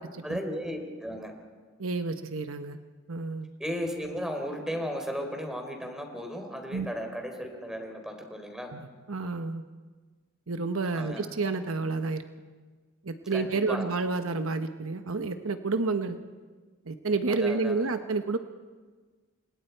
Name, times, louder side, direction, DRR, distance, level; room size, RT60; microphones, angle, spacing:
voice 1, 0.2-1.3 3.6-8.7 10.9-11.2 13.3-13.9 17.3-17.9, equal, 5° right, 3 dB, 3.7 m, -35 dB
voice 2, 1.8-2.8 3.1-3.5 6.7-6.9 8.7-8.8 9.1-9.6 10.5-12.2 13.0-16.2 16.9-18.4, right 3 dB, 75° right, 8 dB, 1.0 m, -29 dB
29.5 x 25.5 x 4.6 m, 1.4 s
head